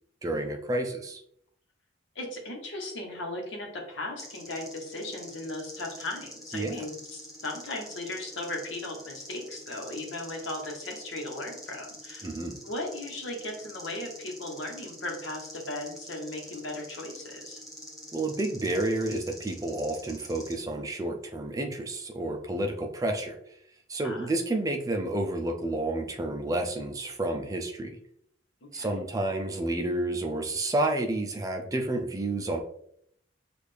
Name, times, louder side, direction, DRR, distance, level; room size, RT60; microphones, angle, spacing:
voice 1, 0.2-1.2 6.5-6.8 12.2-12.6 18.1-23.4 23.9-28.0 28.7-32.6, right 1 dB, 15° right, 3 dB, 0.4 m, -30 dB
voice 2, 2.1-12.3 12.6-17.6 24.0-24.3 28.6-28.9, left 2 dB, 75° left, 1 dB, 1.1 m, -37 dB
sound 1, 4.2-20.5, equal, ahead, 1.2 m, -46 dB
6.3 x 2.5 x 3.4 m, 0.70 s
head